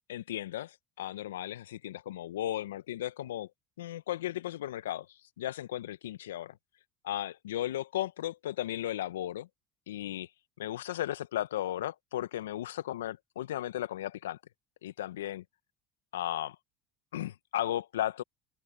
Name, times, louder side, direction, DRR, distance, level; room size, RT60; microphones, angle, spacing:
voice 1, 0.1-3.5 3.8-5.1 5.4-6.6 7.0-9.5 9.9-10.3 10.6-14.4 14.8-15.4 16.1-16.6 17.1-18.2, left 13 dB, 80° left, 1.0 m, -35 dB
hypercardioid pair, 70°, 0 cm